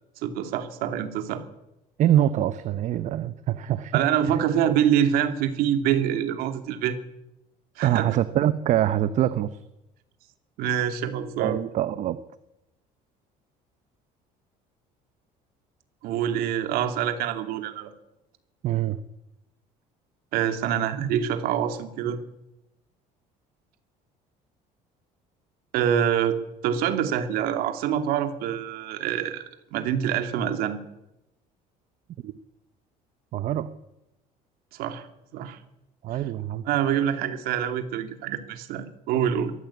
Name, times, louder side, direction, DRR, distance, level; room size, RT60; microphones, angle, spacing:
voice 1, 0.2-1.4 3.9-7.0 7.8-8.1 10.6-11.6 16.0-17.9 20.3-22.2 25.7-26.4 26.6-29.4 29.7-30.8 34.7-35.1 35.3-35.6 36.1-36.2 36.7-39.5, right 9 dB, 75° right, 7 dB, 2.7 m, -25 dB
voice 2, 2.0-4.0 4.3-4.4 7.8-9.5 11.4-12.2 18.6-19.0 32.2-32.3 33.3-33.7 36.0-36.6, right 12 dB, 55° right, 13 dB, 0.9 m, -24 dB
22.0 x 14.5 x 8.6 m, 0.91 s
cardioid pair, 135°, 15 cm